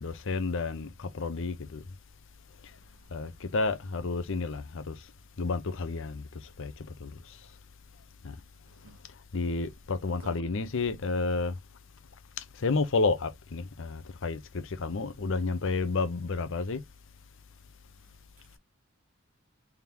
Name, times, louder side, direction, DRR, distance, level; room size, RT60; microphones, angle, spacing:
voice 1, 0.0-1.8 3.1-5.0 5.4-6.2 6.6-7.4 8.2-8.3 9.3-11.5 12.4-16.8, left 3 dB, 65° left, 0.7 m, -31 dB
voice 2, 2.9-3.4 8.7-9.0 10.2-10.4 18.0-18.6, right 4 dB, 80° right, 0.6 m, -55 dB
3.6 x 2.9 x 3.5 m
head